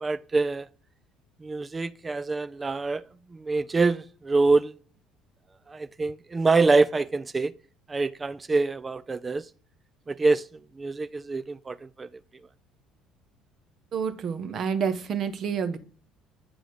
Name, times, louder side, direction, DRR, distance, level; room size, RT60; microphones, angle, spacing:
voice 1, 0.0-0.7 1.4-3.0 3.3-4.7 5.7-7.5 7.9-9.4 10.1-10.4 10.8-12.1, right 3 dB, 25° right, 0.4 m, -25 dB
voice 2, 13.9-15.8, right 6 dB, 45° right, 0.9 m, -28 dB
7.9 x 3.9 x 4.8 m
figure-of-eight pair, 55°, 0 cm